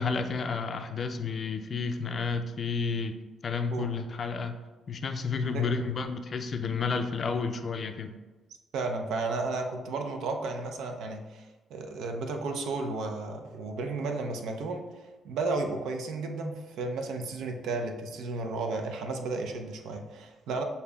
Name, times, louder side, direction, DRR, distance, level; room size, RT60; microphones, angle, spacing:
voice 1, 0.0-3.2 3.4-4.6 4.9-8.1, left 4 dB, 45° left, 7 dB, 0.4 m, -31 dB
voice 2, 8.7-11.5 11.7-14.9 15.2-20.6, right 3 dB, 80° right, 4 dB, 0.5 m, -33 dB
6.6 x 2.7 x 2.3 m, 1.2 s
cardioid pair, 90°, 0 cm